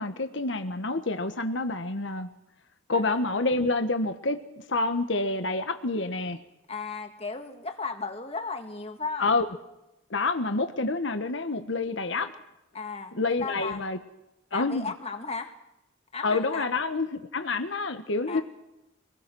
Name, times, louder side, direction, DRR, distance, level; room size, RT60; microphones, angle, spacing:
voice 1, 0.0-2.3 2.9-4.4 4.7-6.4 9.2-9.4 10.1-12.3 13.1-14.0 14.5-14.9 16.2-18.4, left 3 dB, 65° left, 8 dB, 1.3 m, -28 dB
voice 2, 6.7-9.3 12.7-13.8 14.5-15.5 16.1-16.7 18.3-18.4, left 4 dB, 30° left, 5 dB, 1.9 m, -35 dB
25.5 x 20.0 x 6.3 m, 0.90 s
head